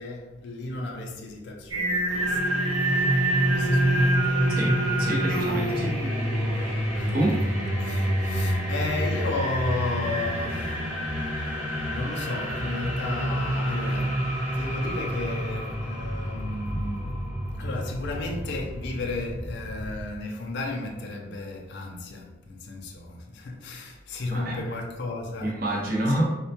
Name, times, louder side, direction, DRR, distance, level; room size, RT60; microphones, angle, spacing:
voice 1, 0.0-4.4 6.9-17.3 17.6-26.2, left 2 dB, 55° left, 0.3 m, -34 dB
Singing, 1.7-6.8, right 1 dB, 85° right, 0.6 m, -27 dB
sound 1, 2.1-20.0, equal, 10° right, 1.0 m, -28 dB
voice 2, 4.5-6.0 7.1-7.4 24.3-24.6 25.4-26.4, right 1 dB, 45° right, 0.6 m, -27 dB
2.1 x 2.1 x 2.8 m
head